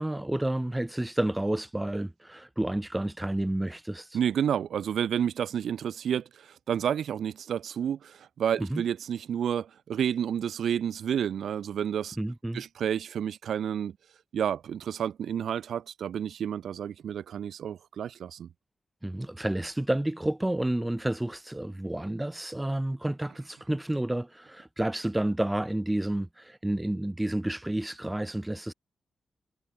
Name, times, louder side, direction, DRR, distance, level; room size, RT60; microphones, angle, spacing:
voice 1, 0.0-4.2 8.6-8.8 12.2-12.6 19.0-28.7, right 1 dB, 10° right, 5.2 m, -30 dB
voice 2, 4.1-12.2 12.5-14.0 14.3-18.5, right 9 dB, 90° right, 3.7 m, -30 dB
wide cardioid pair, 120°, 0 cm